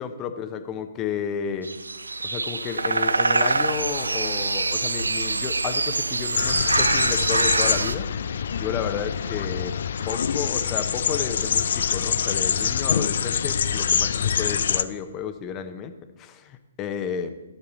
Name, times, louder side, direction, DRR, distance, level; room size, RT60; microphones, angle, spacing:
voice 1, 0.0-1.7 2.2-8.1 8.5-9.7 10.0-15.9 16.2-17.3, left 8 dB, 25° left, 9 dB, 0.9 m, -32 dB
sound 1, 1.6-7.9, right 3 dB, 85° right, 0.4 m, -24 dB
sound 2, 6.3-14.8, left 7 dB, 60° left, 0.4 m, -25 dB
11.5 x 7.0 x 4.0 m, 1.1 s
figure-of-eight pair, 130°, 0 cm